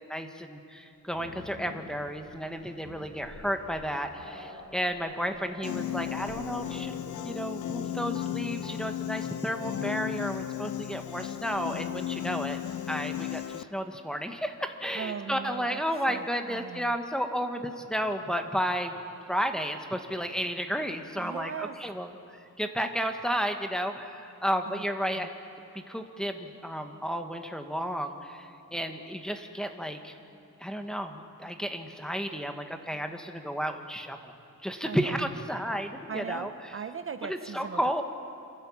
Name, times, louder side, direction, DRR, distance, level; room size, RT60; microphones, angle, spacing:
voice 1, 0.0-12.6 12.9-18.9 19.3-25.3 25.7-30.2 30.6-34.3 34.6-36.5 37.2-38.0, equal, ahead, 6 dB, 1.2 m, -32 dB
Growling, 1.1-10.1 11.5-11.7 12.1-13.2, left 2 dB, 85° left, 6.6 m, -47 dB
Piano, 5.6-13.6, left 12 dB, 65° left, 0.5 m, -35 dB
voice 2, 14.9-15.8 16.1-17.0 21.2-21.8 24.7-24.8 25.2-25.3 34.8-35.2 36.1-37.8, right 6 dB, 40° right, 9 dB, 0.6 m, -38 dB
27.0 x 15.0 x 7.2 m, 2.6 s
wide cardioid pair, 135°, 32 cm